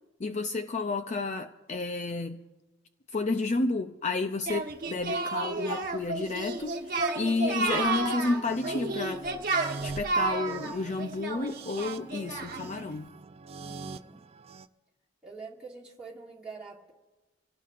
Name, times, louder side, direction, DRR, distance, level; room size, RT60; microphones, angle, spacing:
voice 1, 0.2-2.4 3.1-9.3 9.8-13.1, left 3 dB, 40° left, 8 dB, 0.5 m, -31 dB
Singing, 4.5-12.8, right 3 dB, 50° right, 1.2 m, -31 dB
sound 1, 7.9-14.7, right 4 dB, 30° right, 0.4 m, -44 dB
voice 2, 10.5-11.0 13.6-14.2 15.2-16.9, right 4 dB, 5° right, -6 dB, 2.0 m, -46 dB
27.0 x 17.5 x 2.5 m, 1.2 s
head